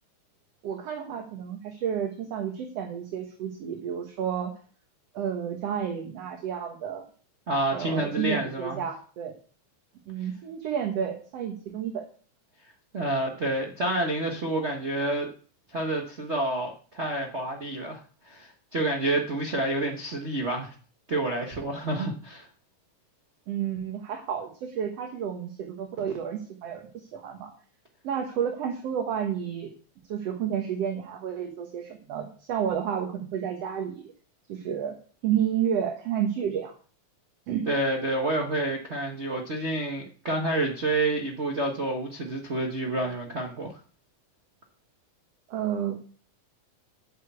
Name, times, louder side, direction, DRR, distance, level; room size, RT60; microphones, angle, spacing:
voice 1, 0.6-4.5 5.1-7.1 7.7-9.3 10.1-12.0 23.5-27.5 28.0-29.7 30.1-34.1 34.5-35.0 35.2-36.7 37.5-37.7 45.5-46.0, right 8 dB, 60° right, 4 dB, 2.2 m, -31 dB
voice 2, 7.5-8.8 12.9-15.3 15.7-20.7 21.1-22.5 37.7-43.8, right 2 dB, 85° right, 1 dB, 0.6 m, -29 dB
8.8 x 6.8 x 8.2 m, 0.41 s
omnidirectional pair, 3.5 m